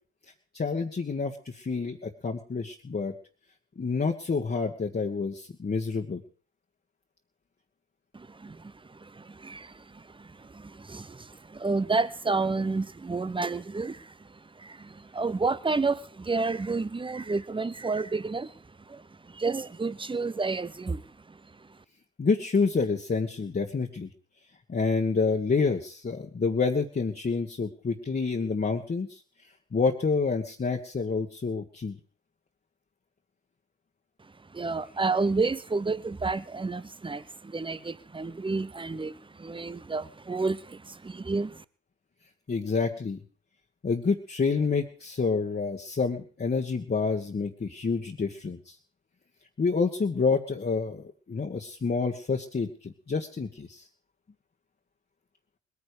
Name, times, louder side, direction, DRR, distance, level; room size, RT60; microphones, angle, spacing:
voice 1, 0.5-3.1 3.8-6.2 22.2-24.1 24.7-29.2 29.7-31.9 42.5-43.2 43.8-48.7 49.6-53.8, left 4 dB, 30° left, 1.8 m, -28 dB
voice 2, 8.1-21.8 34.2-41.6, right 3 dB, 15° right, 0.9 m, -31 dB
20.5 x 9.9 x 5.1 m
hypercardioid pair, 55°, 33 cm